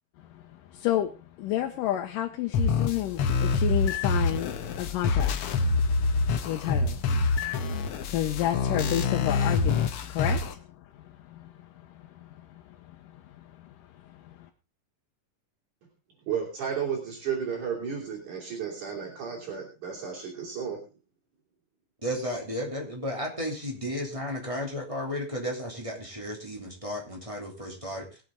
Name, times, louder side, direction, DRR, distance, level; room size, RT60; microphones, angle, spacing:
voice 1, 0.2-14.5, left 12 dB, 85° left, 2.5 m, -32 dB
sound 1, 2.5-10.5, left 4 dB, 65° left, 1.4 m, -26 dB
voice 2, 16.3-20.8, right 7 dB, 65° right, 4.3 m, -33 dB
voice 3, 22.0-28.1, equal, 10° right, 2.5 m, -33 dB
21.0 x 7.8 x 3.7 m
omnidirectional pair, 3.8 m